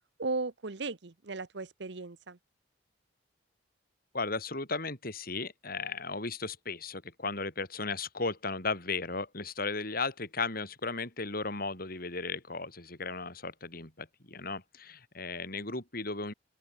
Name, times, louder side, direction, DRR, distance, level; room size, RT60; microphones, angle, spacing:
voice 1, 0.2-2.4, right 3 dB, 65° right, 1.0 m, -36 dB
voice 2, 4.1-16.3, left 3 dB, 50° left, 5.7 m, -35 dB
open air
head